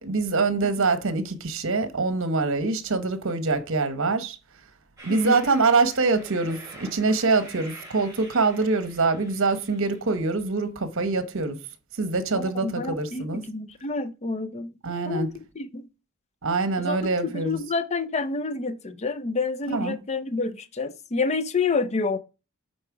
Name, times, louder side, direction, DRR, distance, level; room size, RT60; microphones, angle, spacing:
voice 1, 0.0-4.4 5.0-11.6 12.0-13.5 14.8-15.3 16.4-17.6 19.7-20.0, right 3 dB, 60° right, 0.9 m, -24 dB
Train, 5.0-10.0, right 1 dB, 15° right, 3.0 m, -46 dB
voice 2, 5.1-5.5 12.4-14.7 15.1-15.3 15.6-15.9 16.8-17.0 17.2-22.2, left 4 dB, 30° left, 0.5 m, -28 dB
8.6 x 4.0 x 4.7 m
head